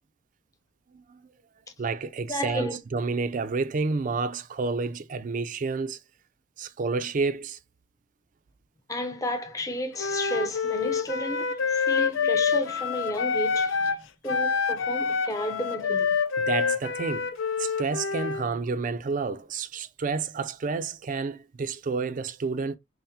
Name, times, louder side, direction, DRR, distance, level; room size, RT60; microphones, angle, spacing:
voice 1, 1.8-6.0 6.6-7.6 16.5-17.3 17.6-22.8, right 4 dB, 40° right, 0.4 m, -30 dB
voice 2, 2.3-2.8 8.9-14.0 14.2-16.2, left 1 dB, 15° left, 0.6 m, -32 dB
Wind instrument woodwind instrument, 10.0-14.0 14.3-18.5, left 5 dB, 80° left, 0.5 m, -27 dB
5.5 x 2.1 x 2.8 m
head